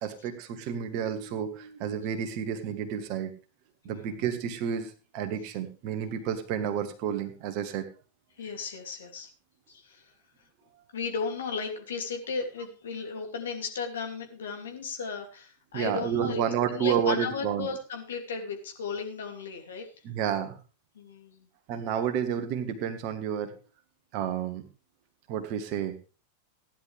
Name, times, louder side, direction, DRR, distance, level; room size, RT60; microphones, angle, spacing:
voice 1, 0.0-3.3 3.9-7.9 15.7-17.7 20.0-20.6 21.7-23.5 24.1-24.6 25.3-25.9, right 8 dB, 45° right, 8 dB, 1.7 m, -30 dB
voice 2, 8.4-9.3 9.7-10.0 10.9-16.4 16.7-19.9 20.9-21.5, left 5 dB, 65° left, 3 dB, 2.7 m, -35 dB
15.5 x 10.5 x 3.4 m, 0.35 s
figure-of-eight pair, 90°, 0 cm